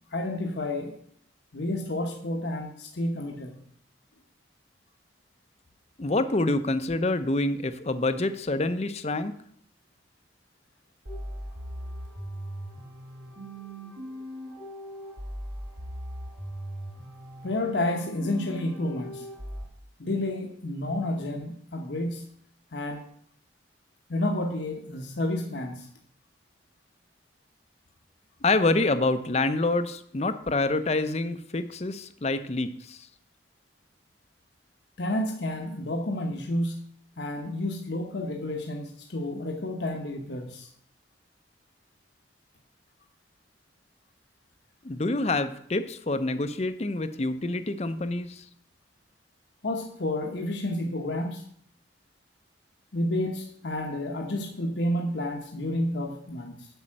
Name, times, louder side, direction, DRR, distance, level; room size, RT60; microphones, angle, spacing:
voice 1, 0.1-1.0 1.5-3.6 17.4-19.3 20.0-22.2 22.7-23.0 24.1-25.9 35.0-36.8 37.2-40.7 49.6-51.4 52.9-56.7, left 1 dB, 70° left, 2 dB, 1.0 m, -30 dB
voice 2, 6.0-9.3 28.4-33.1 44.8-48.4, left 2 dB, 35° left, 11 dB, 0.6 m, -27 dB
sound 1, 11.1-19.6, equal, 80° right, 3.6 m, -39 dB
8.1 x 5.6 x 7.5 m, 0.65 s
head